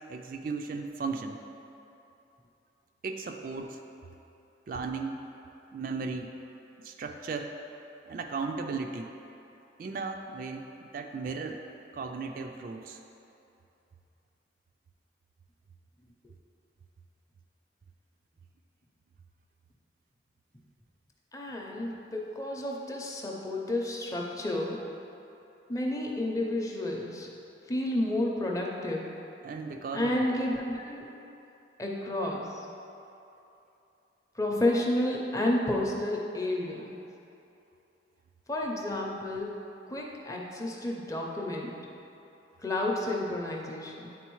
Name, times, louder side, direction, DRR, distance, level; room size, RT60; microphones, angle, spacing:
voice 1, 0.1-1.4 3.0-3.8 4.7-5.2 5.7-6.3 6.8-7.5 8.1-9.1 9.8-10.7 10.9-11.6 11.9-13.0 29.4-30.1, right 4 dB, 50° right, 4 dB, 0.3 m, -35 dB
voice 2, 21.3-24.9 25.7-27.3 27.7-29.2 29.9-31.1 31.8-32.7 34.3-37.1 38.5-39.6 39.9-41.8 42.6-44.1, left 1 dB, 20° left, -1 dB, 0.6 m, -31 dB
9.3 x 3.8 x 3.1 m, 2.8 s
head